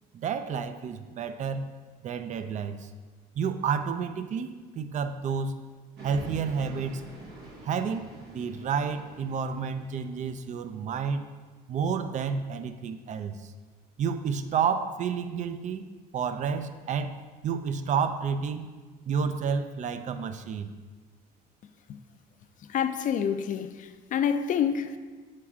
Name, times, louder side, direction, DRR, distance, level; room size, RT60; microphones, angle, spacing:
voice 1, 0.1-1.7 2.0-2.9 3.3-5.6 6.0-7.0 7.6-11.3 11.7-13.5 14.0-15.9 16.1-17.2 17.4-18.7 19.0-20.7, right 6 dB, 45° right, 0.5 m, -30 dB
sound 1, 6.0-10.7, right 1 dB, 75° right, 1.2 m, -46 dB
voice 2, 22.7-25.0, left 8 dB, 50° left, 0.4 m, -28 dB
7.2 x 4.6 x 3.6 m
cardioid pair, 110°, 17 cm